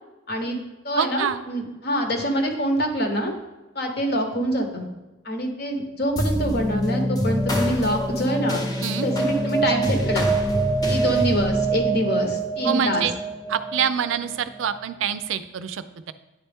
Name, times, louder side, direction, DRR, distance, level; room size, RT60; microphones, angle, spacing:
voice 1, 0.3-0.6 0.8-3.3 3.7-4.8 5.2-8.6 9.0-10.3 10.9-13.1, equal, 55° left, 4 dB, 1.0 m, -25 dB
voice 2, 1.0-1.4 8.8-9.1 12.6-13.1 13.5-16.1, right 8 dB, 90° right, 12 dB, 0.4 m, -26 dB
sound 1, 6.2-14.9, right 2 dB, 20° left, 0.6 m, -25 dB
9.4 x 4.2 x 3.5 m, 1.1 s
head